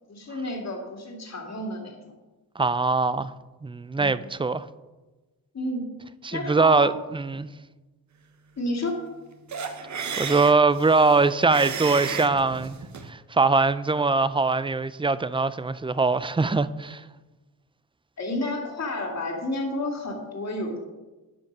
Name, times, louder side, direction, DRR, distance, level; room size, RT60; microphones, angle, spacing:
voice 1, 0.1-2.1 3.9-4.2 5.5-5.8 6.3-6.9 8.6-9.0 18.2-20.8, left 2 dB, 45° left, 2.5 m, -31 dB
voice 2, 2.6-3.3 3.6-4.7 6.2-7.5 10.2-12.8 13.0-17.0, right 3 dB, 15° right, 0.3 m, -22 dB
sound 1, 9.5-13.1, right 6 dB, 50° right, 1.0 m, -33 dB
12.5 x 5.2 x 5.4 m
cardioid pair, 85°, 37 cm